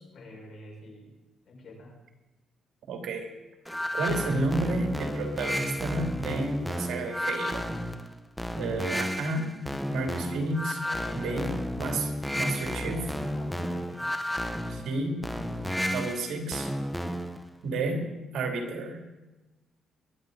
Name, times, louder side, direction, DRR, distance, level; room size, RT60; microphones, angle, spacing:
voice 1, 0.1-1.1 1.5-2.0 10.8-11.6 12.3-12.8 13.2-14.0, left 2 dB, 55° left, 0 dB, 5.7 m, -45 dB
voice 2, 2.9-3.3 3.9-7.7 8.6-9.5 9.9-10.8 11.1-13.1 14.7-15.2 15.9-16.7 17.6-19.0, right 2 dB, 75° right, 2 dB, 2.9 m, -31 dB
sound 1, 3.7-17.5, equal, ahead, 1.0 m, -32 dB
22.5 x 10.5 x 4.0 m, 1.1 s
cardioid pair, 90°, 0 cm